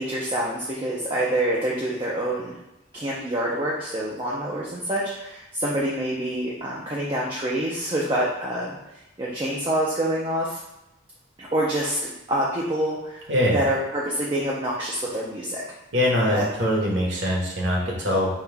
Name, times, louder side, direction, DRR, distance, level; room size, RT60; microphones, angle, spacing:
voice 1, 0.0-2.5 2.9-8.8 9.2-10.6 11.4-15.6 16.3-16.5, right 1 dB, 25° right, -4 dB, 0.5 m, -26 dB
voice 2, 13.3-13.6 15.9-18.4, left 1 dB, 60° right, -3 dB, 1.2 m, -23 dB
5.5 x 2.3 x 3.4 m, 0.92 s
head